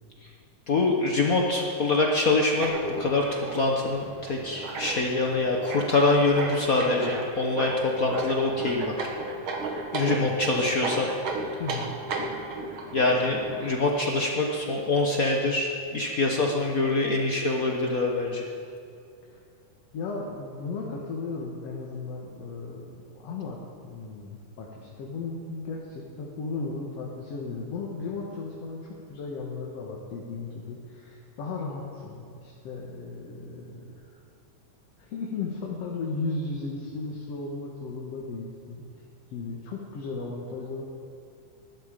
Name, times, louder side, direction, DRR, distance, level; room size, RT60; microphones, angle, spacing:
voice 1, 0.7-2.7 3.0-9.1 9.9-11.1 12.9-18.5, left 2 dB, 80° left, 0 dB, 0.7 m, -25 dB
sound 1, 2.6-13.7, right 3 dB, 50° right, 1.9 m, -35 dB
voice 2, 10.1-10.4 11.6-11.9 19.3-19.4 19.9-34.0 35.0-38.8 39.3-40.8, left 3 dB, 60° left, -2 dB, 2.4 m, -35 dB
20.5 x 12.0 x 5.1 m, 2.5 s
omnidirectional pair, 3.4 m